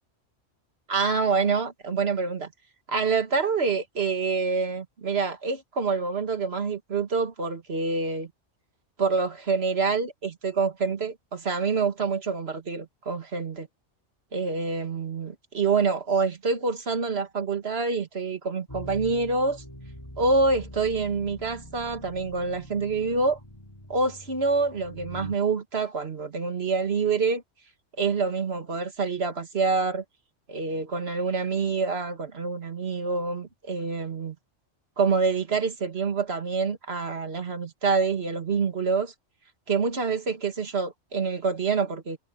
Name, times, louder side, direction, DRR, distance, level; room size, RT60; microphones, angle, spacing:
voice 1, 0.9-2.5 2.9-8.3 9.0-13.7 14.3-19.6 20.2-23.4 23.9-27.4 28.0-30.0 30.5-34.4 35.0-39.1 39.7-42.2, right 4 dB, 55° right, 2.0 m, -26 dB
sound 1, 18.7-25.3, equal, 20° left, 3.5 m, -44 dB
omnidirectional pair, 1.3 m